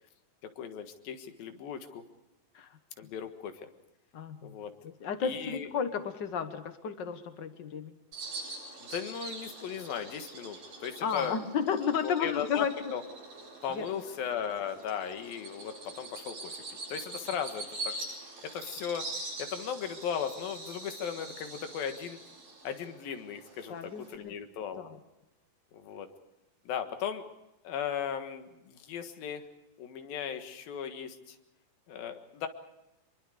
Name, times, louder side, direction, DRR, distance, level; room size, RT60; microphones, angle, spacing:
voice 1, 0.6-2.0 3.0-3.7 4.4-4.7 5.2-5.7 8.8-11.4 12.0-13.0 13.6-17.9 18.4-19.1 19.4-22.2 22.6-24.8 25.7-26.1 26.7-27.2 27.6-29.5 29.8-31.4 31.9-32.5, left 8 dB, 85° left, 7 dB, 3.4 m, -37 dB
voice 2, 4.1-8.0 11.0-12.7 13.7-13.8 23.7-24.3 24.8-25.0, left 7 dB, 60° left, 9 dB, 1.1 m, -33 dB
Bird vocalization bird call bird song, 8.1-24.2, right 2 dB, 85° right, 8.9 m, -44 dB
25.5 x 23.0 x 5.1 m, 0.93 s
omnidirectional pair, 4.1 m